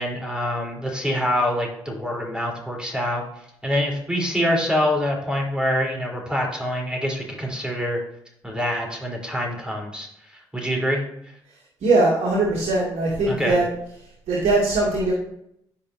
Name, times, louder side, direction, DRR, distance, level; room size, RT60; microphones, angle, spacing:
voice 1, 0.0-3.2 3.6-8.0 8.4-11.0 13.3-13.6, equal, 5° right, -1 dB, 3.5 m, -25 dB
voice 2, 11.8-13.7 14.3-15.1, right 2 dB, 60° right, -6 dB, 2.2 m, -20 dB
13.0 x 5.3 x 2.7 m, 0.74 s
hypercardioid pair, 45°, 13 cm